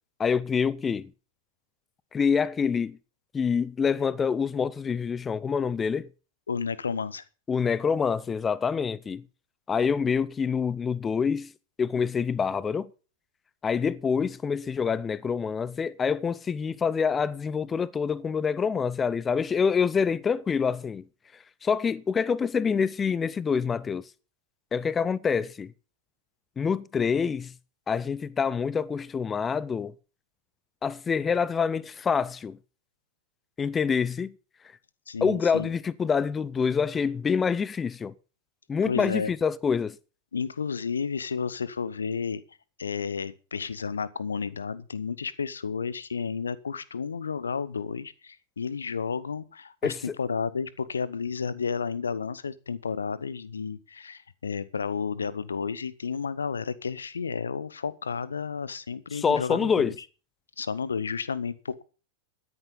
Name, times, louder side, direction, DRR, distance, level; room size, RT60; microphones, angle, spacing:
voice 1, 0.2-1.1 2.1-3.0 3.3-6.1 7.5-9.2 9.7-11.5 11.8-12.9 13.6-21.0 21.6-24.0 24.7-25.7 26.6-27.5 27.9-29.9 30.8-32.6 33.6-34.3 35.2-38.1 38.7-40.0 49.8-50.1 59.1-59.9, left 6 dB, 20° left, 0.6 m, -26 dB
voice 2, 6.5-7.2 35.1-35.7 38.9-39.3 40.3-42.4 42.8-59.9 60.6-61.8, left 5 dB, 70° left, 0.9 m, -32 dB
13.5 x 10.0 x 5.5 m
figure-of-eight pair, 90°, 0 cm